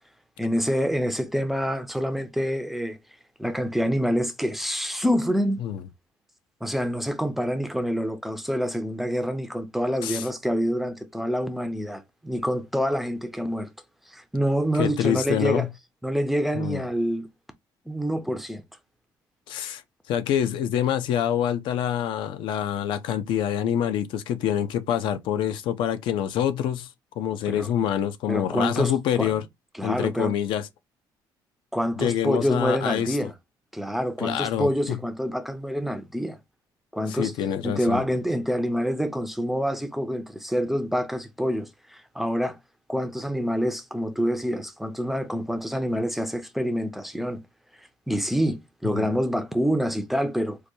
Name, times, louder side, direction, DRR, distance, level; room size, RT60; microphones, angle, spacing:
voice 1, 0.4-3.0 3.4-5.6 6.6-13.7 14.1-15.7 16.0-17.3 17.9-18.6 27.5-27.7 28.3-29.4 29.8-30.3 31.7-33.3 33.7-36.4 36.9-37.3 37.6-42.6 42.9-47.4 48.1-50.6, equal, ahead, 0.4 m, -26 dB
voice 2, 14.8-15.7 16.5-16.9 19.5-19.8 20.1-26.9 27.2-29.4 29.8-30.7 32.0-33.2 34.2-35.0 37.1-38.1 48.8-49.1, left 10 dB, 70° left, 0.5 m, -26 dB
4.6 x 2.2 x 2.6 m
cardioid pair, 165°, 9 cm